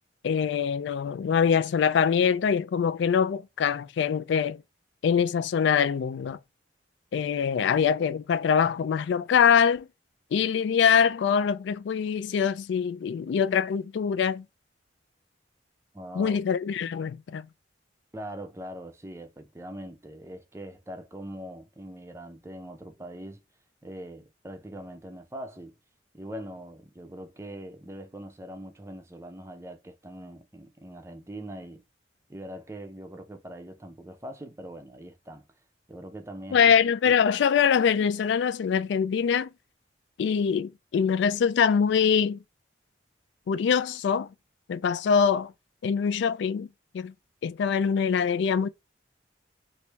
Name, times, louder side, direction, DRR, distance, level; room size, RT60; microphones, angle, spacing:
voice 1, 0.2-4.6 5.0-6.4 7.1-9.9 10.3-14.4 16.2-17.5 36.5-39.5 40.2-42.4 43.5-44.3 44.7-45.5 45.8-46.7 46.9-47.1 47.4-48.7, left 7 dB, 70° left, 0.3 m, -24 dB
voice 2, 15.9-16.4 18.1-23.4 23.8-25.7 26.1-31.8 32.3-35.5 35.9-36.6 37.0-37.2, right 1 dB, 15° right, 0.5 m, -42 dB
3.1 x 2.6 x 3.3 m
head